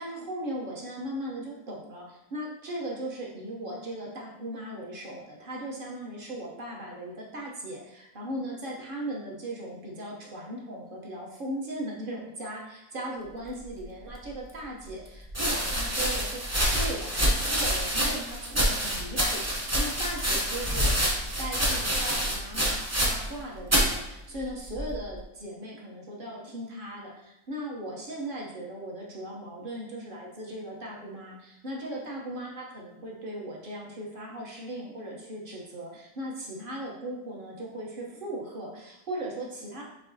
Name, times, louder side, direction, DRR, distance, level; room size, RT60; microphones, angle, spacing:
voice 1, 0.0-16.4 16.7-39.8, right 1 dB, 45° right, -3 dB, 0.8 m, -38 dB
sound 1, 14.2-14.3 15.3-23.4 23.6-24.0 24.7-25.1, equal, 25° right, 0.4 m, -27 dB
6.8 x 2.7 x 2.7 m, 0.89 s
omnidirectional pair, 1.6 m